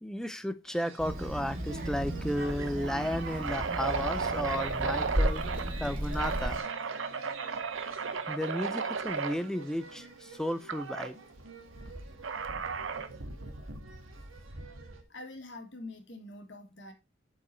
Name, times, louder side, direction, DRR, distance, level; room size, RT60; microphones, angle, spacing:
voice 1, 0.0-5.4 5.8-6.6 8.3-11.2, equal, 5° left, 0.5 m, -34 dB
sound 1, 0.7-15.0, right 3 dB, 90° right, 1.7 m, -47 dB
Child speech kid speaking, 1.0-6.6, equal, 45° right, 1.8 m, -34 dB
sound 2, 1.2-1.5 1.8-1.9 2.5-5.7 6.2-9.4 10.7-11.1 12.2-13.2, right 5 dB, 75° right, 0.8 m, -34 dB
voice 2, 15.1-16.9, left 2 dB, 65° left, 1.8 m, -45 dB
7.9 x 5.3 x 4.3 m
head